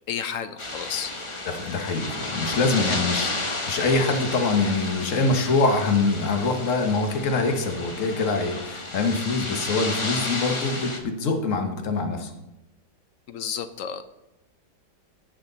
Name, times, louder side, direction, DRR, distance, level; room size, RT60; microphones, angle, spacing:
voice 1, 0.1-1.1 13.3-14.0, left 8 dB, 65° left, 10 dB, 0.8 m, -31 dB
sound 1, 0.6-11.0, left 2 dB, 20° left, 0.9 m, -32 dB
voice 2, 1.5-12.3, left 3 dB, 50° left, 5 dB, 1.5 m, -24 dB
16.0 x 6.5 x 4.0 m, 0.94 s
omnidirectional pair, 1.9 m